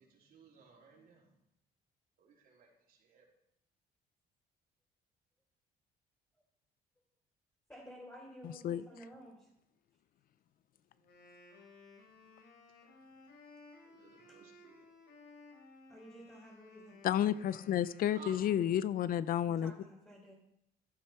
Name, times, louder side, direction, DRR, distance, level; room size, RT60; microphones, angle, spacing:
voice 1, 0.0-1.3 2.2-3.3 13.8-14.9 18.1-18.4, right 5 dB, 60° right, -1 dB, 3.7 m, -57 dB
voice 2, 7.7-9.5 15.9-17.0 19.4-20.3, equal, 10° left, -6 dB, 4.0 m, -53 dB
Wind instrument woodwind instrument, 10.9-19.1, left 3 dB, 90° left, 3.2 m, -59 dB
voice 3, 17.0-19.7, left 10 dB, 60° left, 17 dB, 0.6 m, -31 dB
13.5 x 7.7 x 5.8 m, 0.80 s
cardioid pair, 110°, 17 cm